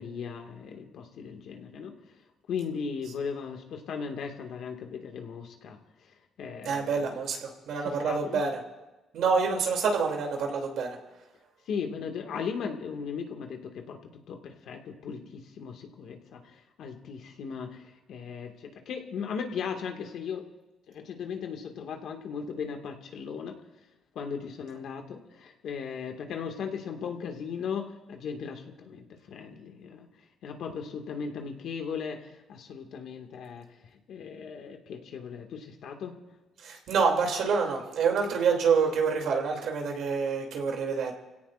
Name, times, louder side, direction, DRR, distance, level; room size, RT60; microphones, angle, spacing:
voice 1, 0.0-2.0 2.5-6.1 6.4-7.2 7.8-8.4 11.7-14.0 14.3-20.5 20.9-23.6 24.2-30.1 30.4-33.7 34.1-36.1, left 6 dB, 75° left, 3 dB, 1.9 m, -37 dB
voice 2, 6.6-8.6 9.1-11.0 36.6-41.1, right 5 dB, 75° right, 1 dB, 2.9 m, -27 dB
28.5 x 17.0 x 2.5 m, 1.1 s
cardioid pair, 90°, 0 cm